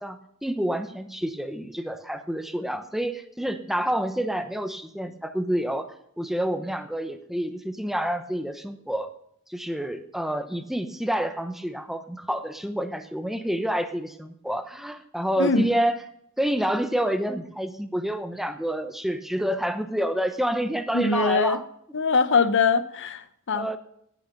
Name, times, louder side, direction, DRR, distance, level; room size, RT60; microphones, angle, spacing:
voice 1, 0.0-9.1 9.5-16.0 16.4-21.7 23.5-23.8, equal, ahead, 9 dB, 0.9 m, -28 dB
voice 2, 15.4-15.7 20.9-21.6 21.9-23.8, left 4 dB, 55° left, 13 dB, 0.8 m, -23 dB
18.0 x 9.2 x 5.4 m, 0.73 s
head